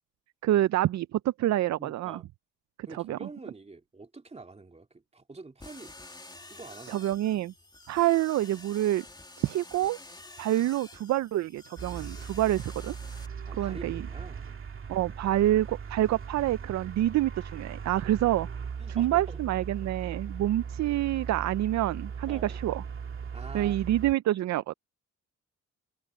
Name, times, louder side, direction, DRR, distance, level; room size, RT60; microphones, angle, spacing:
voice 1, 0.4-2.2 2.8-3.3 6.9-7.5 7.9-9.0 9.4-10.0 10.4-12.9 13.2-13.3 13.6-14.0 14.9-18.5 18.9-22.8 23.5-24.7, right 14 dB, 65° right, 0.6 m, -27 dB
voice 2, 1.8-2.2 2.9-5.9 6.5-7.1 13.5-14.5 18.8-19.4 22.3-22.6 23.3-23.8, right 3 dB, 20° right, 2.8 m, -46 dB
sound 1, 5.6-13.3, left 2 dB, 15° left, 2.5 m, -49 dB
sound 2, 11.8-24.1, right 6 dB, 45° right, 2.2 m, -39 dB
cardioid pair, 90°, 30 cm